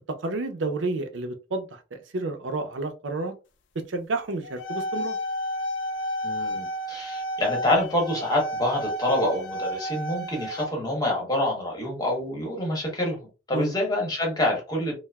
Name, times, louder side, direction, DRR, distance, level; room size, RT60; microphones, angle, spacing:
voice 1, 0.2-3.3 3.9-5.2 13.5-13.7, right 3 dB, 85° right, 0.5 m, -30 dB
sound 1, 4.4-10.7, equal, 80° left, 0.4 m, -31 dB
voice 2, 6.2-13.2 13.5-14.9, left 1 dB, 20° left, 1.0 m, -26 dB
3.0 x 2.0 x 2.2 m
head